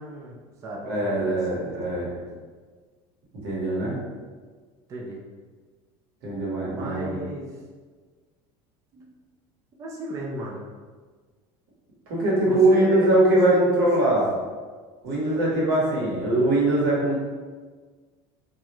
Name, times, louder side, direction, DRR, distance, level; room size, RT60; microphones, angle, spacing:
voice 1, 0.0-1.8 2.2-2.3 4.9-5.2 6.7-7.6 9.8-10.7 12.4-14.2 15.2-15.9, right 2 dB, 25° right, -2 dB, 0.3 m, -36 dB
voice 2, 0.9-2.1 3.3-4.0 6.2-7.2 12.1-14.3 15.0-17.2, right 1 dB, 85° right, -6 dB, 1.0 m, -22 dB
2.3 x 2.0 x 2.9 m, 1.5 s
cardioid pair, 145°, 12 cm